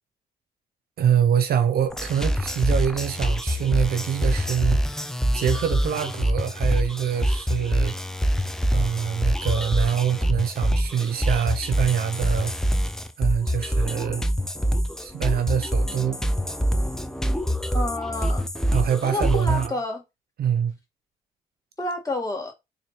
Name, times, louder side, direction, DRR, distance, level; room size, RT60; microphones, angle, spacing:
voice 1, 1.0-4.8 5.3-8.0 8.7-12.5 13.2-14.2 15.0-16.3 18.7-19.7 20.4-20.7, right 8 dB, 60° right, 0.6 m, -25 dB
sound 1, 1.9-19.7, equal, 5° left, 0.5 m, -25 dB
voice 2, 17.7-18.5 19.0-20.0 21.8-22.5, left 1 dB, 20° left, 1.8 m, -29 dB
4.1 x 2.5 x 3.2 m
supercardioid pair, 60°, 18 cm